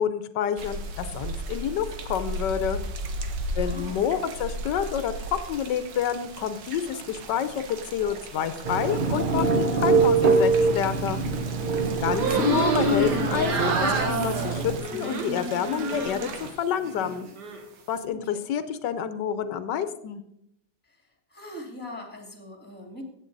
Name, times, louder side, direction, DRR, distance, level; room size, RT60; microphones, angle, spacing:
voice 1, 0.0-2.8 3.6-5.1 5.5-11.2 12.0-16.3 16.6-17.3 17.9-20.2, left 8 dB, 85° left, 12 dB, 1.4 m, -28 dB
sound 1, 0.6-16.5, right 2 dB, 90° right, 1.8 m, -37 dB
voice 2, 3.5-4.1 11.9-12.5 18.1-18.5 20.9-21.0 21.3-23.0, left 1 dB, 5° left, 3 dB, 2.1 m, -41 dB
Telephone, 8.6-14.8, right 4 dB, 40° right, 0.8 m, -24 dB
sound 2, 12.1-16.5 16.8-17.6, right 2 dB, 75° right, 2.0 m, -27 dB
15.0 x 8.5 x 3.9 m, 0.78 s
omnidirectional pair, 1.8 m